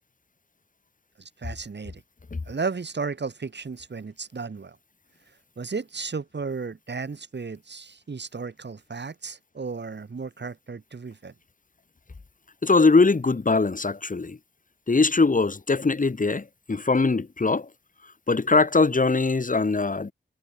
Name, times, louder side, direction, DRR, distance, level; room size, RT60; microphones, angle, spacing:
voice 1, 1.2-2.0 2.5-4.8 5.6-11.3, right 4 dB, 60° right, 4.0 m, -34 dB
voice 2, 12.6-14.4 14.9-17.7 18.3-20.1, left 3 dB, 40° left, 2.4 m, -21 dB
wide cardioid pair, 90°, 20 cm